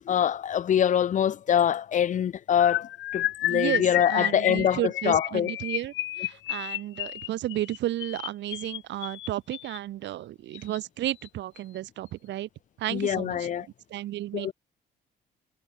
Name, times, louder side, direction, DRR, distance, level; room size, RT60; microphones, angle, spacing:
voice 1, 0.0-5.5 12.9-13.7 14.3-14.5, left 9 dB, 40° left, 1.1 m, -24 dB
sound 1, 2.6-9.8 10.5-10.8 11.0-11.3 11.6-11.8, left 14 dB, 85° left, 4.7 m, -32 dB
voice 2, 3.5-3.8 4.1-5.9 6.2-12.5 12.8-13.4 13.9-14.5, right 14 dB, 70° right, 1.5 m, -32 dB
cardioid pair, 175°, 19 cm